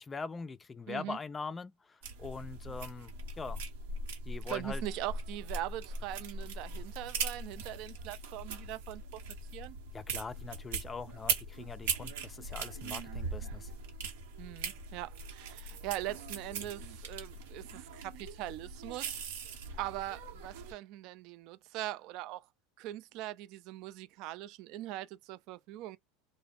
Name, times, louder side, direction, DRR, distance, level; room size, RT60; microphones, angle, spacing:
voice 1, 0.0-3.6 4.3-4.8 9.9-13.7, left 4 dB, 20° left, 0.3 m, -42 dB
voice 2, 0.9-1.2 4.5-9.2 9.5-9.8 14.4-19.3 19.8-22.4 22.8-26.0, right 15 dB, 60° right, 0.3 m, -41 dB
sound 1, 2.0-20.7, right 4 dB, 80° right, 1.0 m, -40 dB
2.4 x 2.1 x 3.3 m
hypercardioid pair, 95°, 0 cm